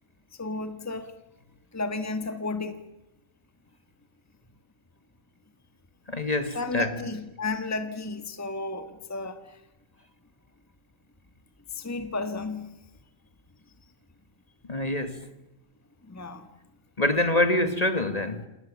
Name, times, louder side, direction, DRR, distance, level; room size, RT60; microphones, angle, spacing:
voice 1, 0.4-1.1 1.7-2.8 6.5-9.4 11.7-12.7 16.1-16.5, left 3 dB, 10° left, 1.5 m, -32 dB
voice 2, 6.1-7.0 14.7-15.3 17.0-18.5, left 1 dB, 30° left, 1.7 m, -25 dB
29.0 x 27.5 x 7.2 m
omnidirectional pair, 1.4 m